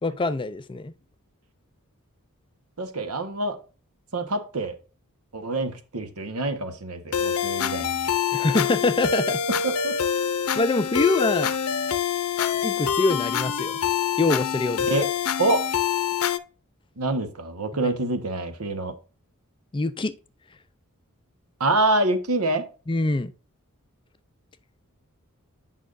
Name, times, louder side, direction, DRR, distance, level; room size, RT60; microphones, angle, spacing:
voice 1, 0.0-0.9 8.3-9.4 10.5-11.5 12.6-13.8 14.2-14.9 17.8-17.9 19.7-20.1 22.9-23.3, left 2 dB, 20° left, 0.5 m, -24 dB
voice 2, 2.8-3.6 4.1-4.8 5.3-8.1 9.6-10.0 14.9-15.1 15.4-15.7 17.0-18.9 21.6-22.7, right 2 dB, 80° right, 1.2 m, -26 dB
sound 1, 7.1-16.4, left 8 dB, 75° left, 0.6 m, -25 dB
8.6 x 5.6 x 2.5 m
head